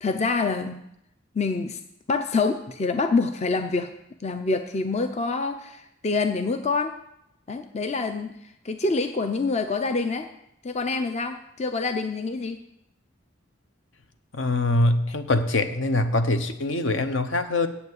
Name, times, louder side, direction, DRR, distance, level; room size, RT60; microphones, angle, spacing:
voice 1, 0.0-0.8 1.3-1.8 2.1-3.9 4.2-7.0 7.5-10.3 10.6-12.6, left 3 dB, 35° left, 8 dB, 0.5 m, -26 dB
voice 2, 14.3-17.7, left 2 dB, 70° left, 9 dB, 0.9 m, -23 dB
8.3 x 7.2 x 8.2 m, 0.78 s
head